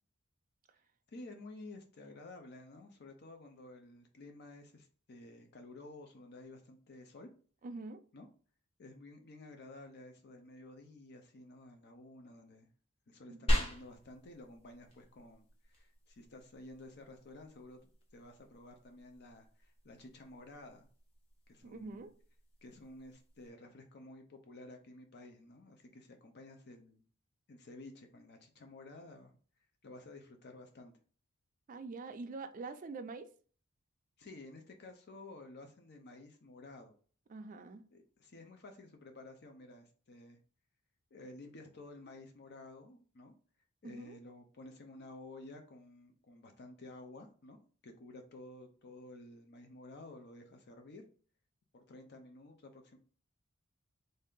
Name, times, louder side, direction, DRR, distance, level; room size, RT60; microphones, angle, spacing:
voice 1, 1.1-7.3 8.1-8.3 8.8-12.7 13.1-17.8 18.1-20.9 21.5-22.1 22.6-27.0 27.5-29.3 29.8-31.0 34.2-36.9 37.9-40.4 41.1-43.3 43.8-47.6 47.8-51.1 51.7-53.0, left 2 dB, 50° left, 0.5 m, -52 dB
voice 2, 7.6-8.0 13.3-13.5 21.6-22.1 31.7-33.3 37.3-37.8 43.8-44.2, right 3 dB, 40° right, 0.4 m, -45 dB
sound 1, 13.5-23.5, equal, 30° left, 1.0 m, -41 dB
3.2 x 2.7 x 3.6 m
head